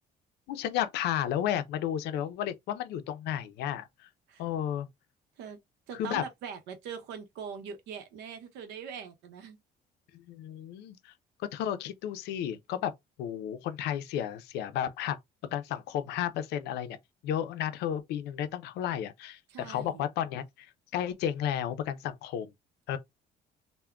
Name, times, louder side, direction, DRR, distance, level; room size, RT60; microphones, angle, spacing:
voice 1, 0.5-4.1 4.4-4.9 5.9-6.2 10.1-11.1 11.4-12.9 13.2-15.2 15.5-17.0 17.2-20.7 20.9-22.5 22.9-23.0, left 10 dB, 80° left, 0.4 m, -32 dB
voice 2, 5.9-9.6 19.5-20.0, right 6 dB, 85° right, 0.7 m, -42 dB
3.5 x 2.1 x 2.2 m
cardioid pair, 110°, 17 cm